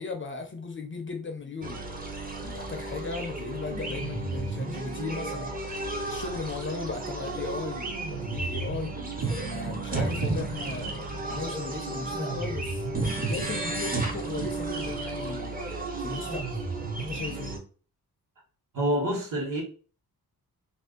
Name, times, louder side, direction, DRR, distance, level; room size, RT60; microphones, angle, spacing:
voice 1, 0.0-1.8 2.4-5.5 6.1-7.8 8.1-8.9 9.3-12.9 13.3-15.5 16.0-16.6 17.0-17.5, left 4 dB, 35° left, 0.4 m, -36 dB
sound 1, 1.6-17.6, right 3 dB, 25° right, 0.5 m, -32 dB
voice 2, 18.7-19.6, right 1 dB, 60° right, 1.2 m, -27 dB
2.5 x 2.4 x 3.6 m
wide cardioid pair, 145°, 37 cm